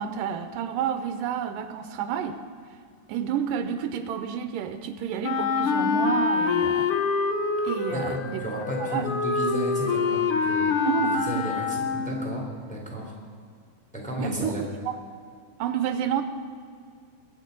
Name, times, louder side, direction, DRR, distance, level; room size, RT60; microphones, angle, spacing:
voice 1, 0.0-2.4 3.1-7.0 7.7-8.5 8.8-9.1 10.8-11.5 14.2-14.5 14.9-15.0 15.6-16.2, right 8 dB, 85° right, 9 dB, 2.3 m, -30 dB
Wind instrument woodwind instrument, 5.2-12.2, left 4 dB, 70° left, 1.3 m, -25 dB
voice 2, 7.9-13.1 13.9-14.6, right 1 dB, ahead, -1 dB, 2.6 m, -33 dB
22.5 x 8.6 x 5.3 m, 2.2 s
omnidirectional pair, 3.9 m